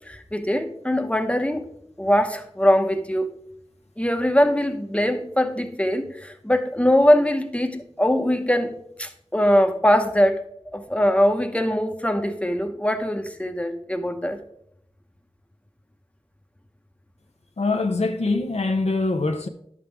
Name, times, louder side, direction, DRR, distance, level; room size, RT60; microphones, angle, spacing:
voice 1, 0.1-1.7 2.0-3.3 4.0-10.4 10.7-14.4, equal, 10° left, 1.0 m, -22 dB
voice 2, 17.6-19.5, left 3 dB, 80° left, 0.8 m, -23 dB
10.5 x 7.3 x 3.5 m
wide cardioid pair, 45°, 11 cm